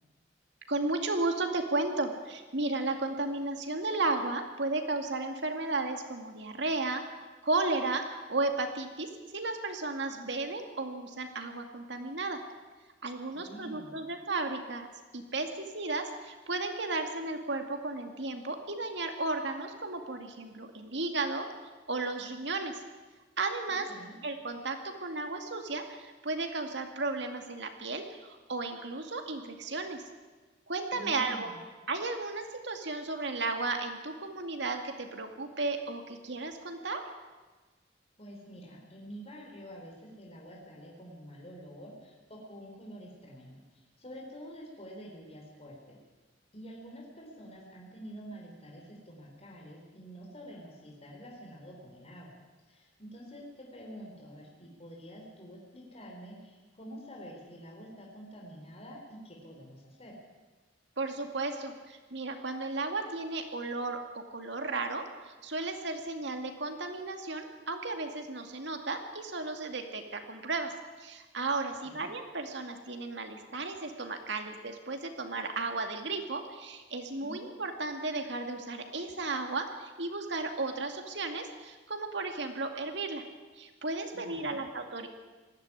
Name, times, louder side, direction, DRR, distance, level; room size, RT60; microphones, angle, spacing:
voice 1, 0.7-7.0 7.4-12.4 13.0-14.9 15.1-22.8 23.4-23.9 24.2-30.0 30.7-31.5 31.9-37.0 61.0-83.2 83.6-85.1, right 3 dB, 65° right, 5 dB, 2.3 m, -34 dB
voice 2, 13.3-14.0 23.7-24.1 30.9-31.6 38.2-46.0 46.5-52.3 52.7-60.2 71.8-72.1 77.2-77.4 84.1-84.6, equal, 35° left, -1 dB, 4.1 m, -47 dB
19.5 x 14.5 x 9.8 m, 1.3 s
head